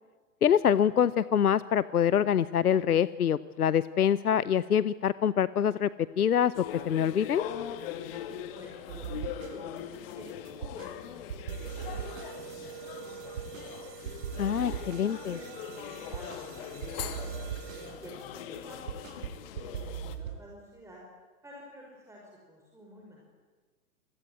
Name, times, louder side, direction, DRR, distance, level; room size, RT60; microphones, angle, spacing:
voice 1, 0.4-5.9 6.2-7.4 14.4-15.3, left 9 dB, 70° left, 18 dB, 0.8 m, -25 dB
sound 1, 6.5-20.2, left 10 dB, 35° left, 2.1 m, -41 dB
voice 2, 8.5-13.3 13.6-14.1 15.1-19.3 19.5-21.0 21.4-23.2, equal, 5° right, -2 dB, 5.5 m, -50 dB
sound 2, 8.9-9.8 10.1-11.0 11.3-13.7 14.1-16.5 16.8-20.4, right 8 dB, 55° right, 1.7 m, -40 dB
sound 3, 11.5-18.3, right 10 dB, 25° right, 3.1 m, -47 dB
28.5 x 22.0 x 9.4 m, 1.4 s
figure-of-eight pair, 115°, 46 cm